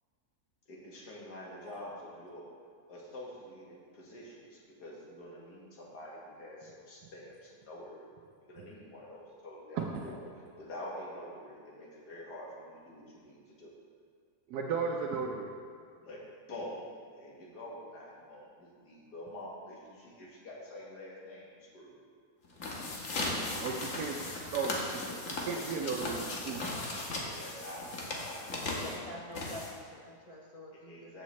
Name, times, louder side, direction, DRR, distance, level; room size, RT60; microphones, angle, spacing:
voice 1, 0.7-2.5 2.9-8.1 8.5-10.2 10.6-13.7 16.0-16.2 16.5-16.9 17.1-22.0 27.2-28.9 30.7-31.2, left 1 dB, 90° left, -4 dB, 2.3 m, -47 dB
voice 2, 14.5-15.5 23.6-26.6, right 5 dB, 80° right, 0 dB, 1.2 m, -35 dB
sound 1, 22.4-30.0, left 2 dB, 55° left, 1.5 m, -37 dB
voice 3, 28.6-31.2, left 1 dB, 40° left, -3 dB, 0.6 m, -46 dB
14.0 x 6.0 x 3.2 m, 2.1 s
omnidirectional pair, 1.7 m